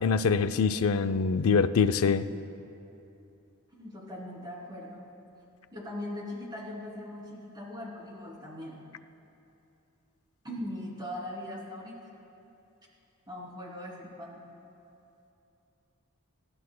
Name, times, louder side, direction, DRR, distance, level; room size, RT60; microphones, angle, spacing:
voice 1, 0.0-2.3, left 5 dB, 70° left, 11 dB, 0.5 m, -24 dB
voice 2, 3.7-5.1 5.7-8.8 10.4-12.1 13.3-14.5, left 1 dB, 20° right, -4 dB, 2.8 m, -40 dB
28.0 x 13.5 x 2.2 m, 2.8 s
head